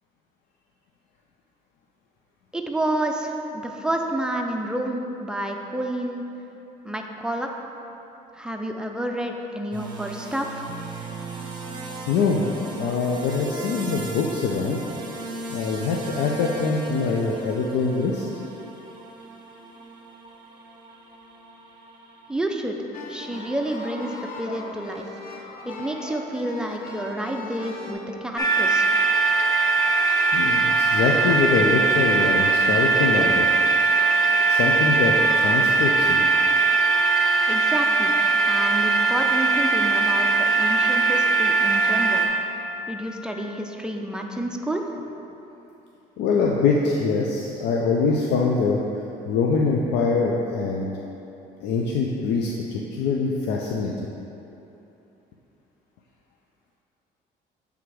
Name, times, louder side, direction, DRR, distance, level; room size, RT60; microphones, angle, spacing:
voice 1, 2.5-6.2 6.8-7.5 8.3-10.6 22.3-22.8 23.1-25.1 25.7-28.9 37.5-38.1 38.4-42.3 42.9-44.8, right 1 dB, 5° right, 2 dB, 0.5 m, -29 dB
sound 1, 9.7-22.3, right 2 dB, 25° right, 1.0 m, -38 dB
voice 2, 12.1-12.4 12.8-14.8 15.5-18.2 30.3-33.5 34.4-35.2 35.4-36.3 46.2-48.8 49.3-50.9 51.6-53.9, left 4 dB, 80° left, -1 dB, 0.5 m, -23 dB
sound 2, 22.9-27.9, left 2 dB, 55° left, 0.9 m, -38 dB
sound 3, 28.4-42.3, right 4 dB, 20° left, 0.8 m, -20 dB
7.7 x 3.5 x 4.8 m, 3.0 s
cardioid pair, 110°, 17 cm